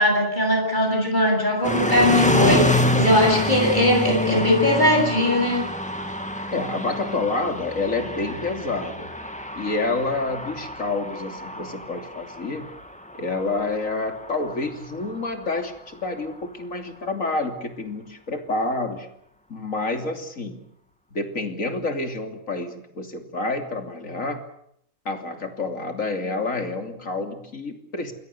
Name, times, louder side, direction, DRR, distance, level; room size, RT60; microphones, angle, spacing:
voice 1, 0.0-5.6, left 1 dB, 35° left, 2 dB, 8.2 m, -20 dB
sound 1, 1.6-15.7, left 1 dB, 5° left, 2.0 m, -27 dB
voice 2, 6.5-9.1 9.6-12.7 13.1-19.1 19.5-20.6 21.1-24.4 25.0-28.1, left 3 dB, 85° left, 5 dB, 3.4 m, -28 dB
28.0 x 21.5 x 6.9 m, 0.72 s
omnidirectional pair, 1.3 m